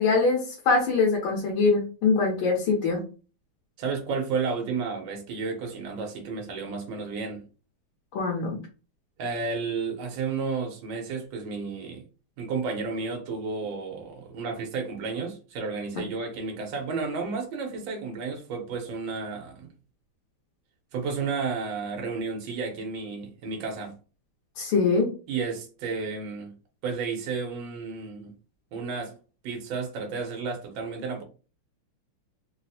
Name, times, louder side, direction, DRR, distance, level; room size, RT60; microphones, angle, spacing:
voice 1, 0.0-3.0 8.1-8.6 24.6-25.1, left 4 dB, 80° left, 1.7 m, -23 dB
voice 2, 3.8-7.4 9.2-12.0 12.4-19.7 20.9-24.0 25.3-26.5 26.8-28.3 28.7-29.1 29.4-31.2, right 4 dB, 70° right, 1.5 m, -32 dB
4.0 x 2.0 x 2.7 m
omnidirectional pair, 2.3 m